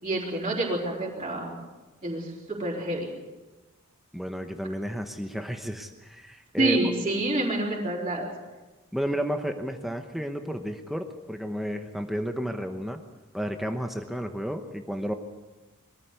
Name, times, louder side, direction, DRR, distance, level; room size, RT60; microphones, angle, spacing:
voice 1, 0.0-1.6 2.0-3.1 6.6-8.3, right 1 dB, 25° right, -7 dB, 4.1 m, -27 dB
voice 2, 4.1-6.8 8.9-13.0 13.3-15.1, equal, ahead, 5 dB, 0.9 m, -32 dB
22.5 x 14.5 x 8.2 m, 1.2 s
head